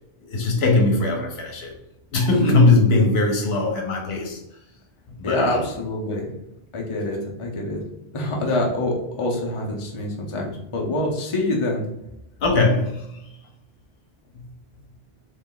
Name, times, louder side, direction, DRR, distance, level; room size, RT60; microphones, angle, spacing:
voice 1, 0.3-1.7 2.1-4.4 5.2-5.6 12.4-13.1 14.4-14.5, left 2 dB, 75° left, 1 dB, 1.0 m, -20 dB
voice 2, 5.2-6.3 6.7-7.8 8.1-11.8, left 1 dB, 35° left, -1 dB, 0.7 m, -25 dB
3.3 x 3.0 x 3.7 m, 0.87 s
omnidirectional pair, 1.1 m